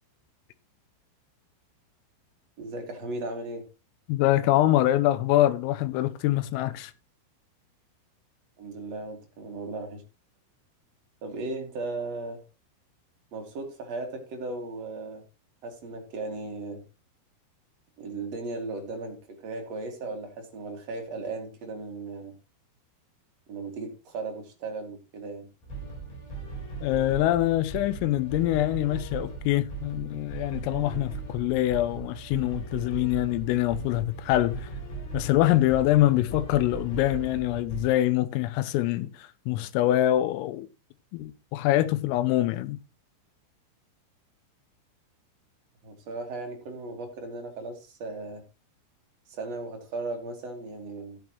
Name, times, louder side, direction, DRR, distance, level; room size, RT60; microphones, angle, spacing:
voice 1, 2.6-3.6 8.6-10.0 11.2-12.4 13.3-15.2 15.6-16.8 18.0-22.3 23.5-25.5 45.8-48.4 49.3-51.2, right 3 dB, 45° right, 2.2 m, -36 dB
voice 2, 4.1-6.9 26.8-34.7 35.1-40.7 41.1-42.8, left 14 dB, 85° left, 3.5 m, -24 dB
sound 1, 25.6-37.9, right 4 dB, 50° left, 5.6 m, -38 dB
15.5 x 8.6 x 3.0 m
omnidirectional pair, 5.9 m